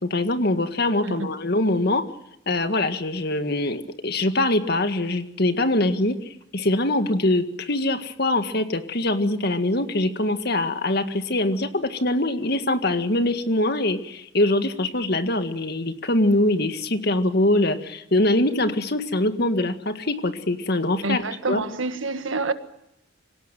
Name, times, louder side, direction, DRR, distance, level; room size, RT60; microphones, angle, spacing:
voice 1, 0.0-2.0 2.5-6.2 6.5-21.6, left 1 dB, 50° left, 1.9 m, -23 dB
voice 2, 21.0-22.5, right 3 dB, 75° right, 1.7 m, -27 dB
26.0 x 17.5 x 9.3 m
head